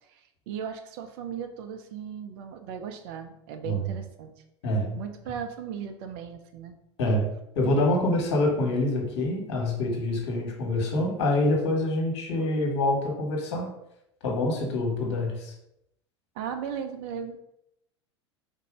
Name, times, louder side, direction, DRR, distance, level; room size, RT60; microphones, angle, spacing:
voice 1, 0.1-4.3 4.9-6.8 16.3-17.4, right 7 dB, 55° right, 7 dB, 0.6 m, -37 dB
voice 2, 4.6-5.0 7.0-7.3 7.5-13.7 14.2-15.5, left 1 dB, 65° left, 0 dB, 1.3 m, -26 dB
3.9 x 2.7 x 4.8 m, 0.80 s
figure-of-eight pair, 80°, 15 cm